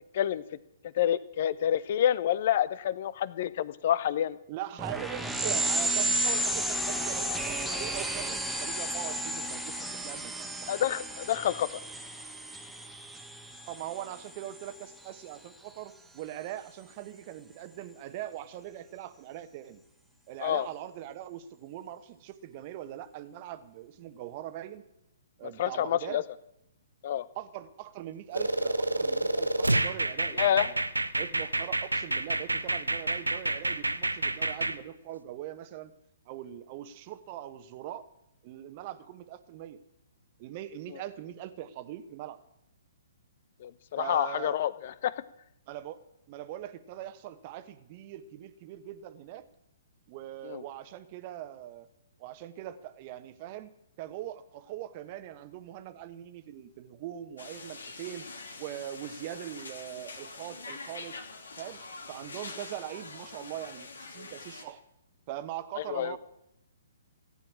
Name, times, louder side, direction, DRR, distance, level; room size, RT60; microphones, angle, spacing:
voice 1, 0.9-4.4 10.7-11.8 20.4-20.7 25.6-26.2 27.0-27.2 30.4-30.7 43.6-45.1 50.4-50.6 65.9-66.2, left 11 dB, 50° left, 17 dB, 0.8 m, -28 dB
voice 2, 4.5-10.7 13.6-19.8 20.3-24.8 25.4-26.2 27.3-30.8 31.1-35.9 36.3-38.1 38.4-39.8 40.4-42.4 44.0-44.6 45.7-49.5 50.1-51.9 52.2-53.7 54.0-58.3 58.6-61.2 61.6-61.8 62.1-64.8 65.3-66.2, right 12 dB, 40° right, 12 dB, 1.2 m, -41 dB
sound 1, 4.8-14.9, right 1 dB, 5° right, 1.2 m, -33 dB
sound 2, 28.3-34.8, right 2 dB, 90° right, 0.8 m, -29 dB
sound 3, 57.4-64.6, left 3 dB, 75° left, 2.6 m, -44 dB
15.5 x 9.0 x 8.7 m, 0.80 s
figure-of-eight pair, 125°, 0 cm